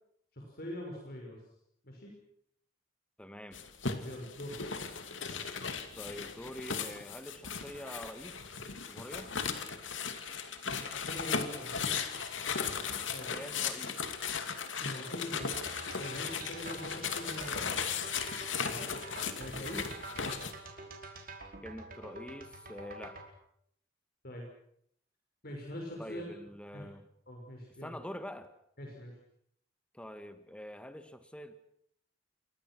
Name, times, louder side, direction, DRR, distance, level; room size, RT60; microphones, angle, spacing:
voice 1, 0.3-1.4 1.8-2.1 4.0-4.6 11.1-11.7 13.1-13.3 14.8-15.6 16.0-17.8 18.6-19.0 19.4-19.9 24.2-24.4 25.4-26.3 26.7-26.9 27.3-28.0 28.8-29.2, left 1 dB, 55° left, 0 dB, 6.0 m, -43 dB
voice 2, 3.2-3.6 6.0-8.4 8.9-9.3 13.3-14.0 15.2-15.5 21.6-23.2 26.0-27.1 27.8-28.5 29.9-31.5, equal, 5° left, 9 dB, 1.8 m, -45 dB
sound 1, 3.5-20.5, left 6 dB, 90° left, 2.6 m, -37 dB
sound 2, 15.4-23.3, right 2 dB, 50° right, 5.1 m, -47 dB
29.0 x 23.5 x 6.3 m, 0.71 s
head